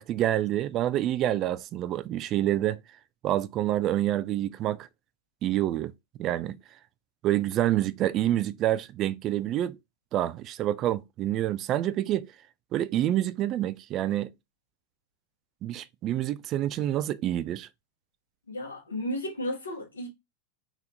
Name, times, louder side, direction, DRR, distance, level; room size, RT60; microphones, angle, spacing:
voice 1, 0.0-2.8 3.2-4.9 5.4-5.9 6.2-6.6 7.2-9.8 10.1-12.3 12.7-14.3 15.6-17.7, right 13 dB, 35° right, 0.3 m, -27 dB
voice 2, 18.5-20.1, left 1 dB, 75° left, 1.5 m, -33 dB
3.6 x 3.4 x 2.7 m
figure-of-eight pair, 90°, 0 cm